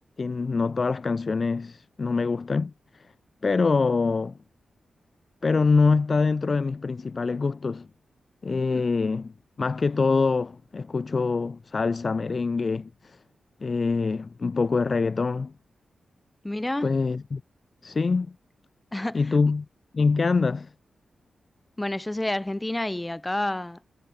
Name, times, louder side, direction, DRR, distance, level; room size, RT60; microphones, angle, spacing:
voice 1, 0.2-3.1 3.4-4.4 5.4-7.9 8.4-9.3 9.6-13.2 13.6-15.5 16.8-17.4 17.8-18.3 19.1-19.7 19.9-20.7, left 4 dB, 30° left, 0.5 m, -24 dB
voice 2, 16.4-16.9 18.9-19.2 21.8-23.8, left 1 dB, 10° left, 2.0 m, -29 dB
wide cardioid pair, 180°, 0 cm